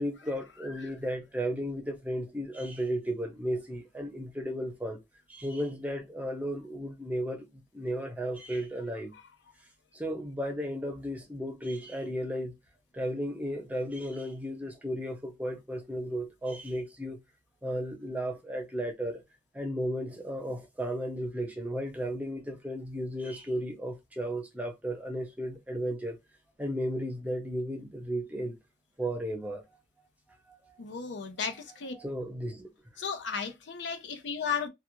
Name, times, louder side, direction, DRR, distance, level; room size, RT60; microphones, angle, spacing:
voice 1, 0.0-5.0 5.3-9.1 9.9-12.5 12.9-17.2 17.6-19.2 19.5-26.2 26.6-28.6 29.0-29.6 30.5-30.6 31.4-31.6 31.9-32.7, equal, 10° right, 0.6 m, -34 dB
voice 2, 30.8-31.9 33.0-34.7, left 6 dB, 80° left, 0.6 m, -34 dB
2.4 x 2.2 x 2.9 m
head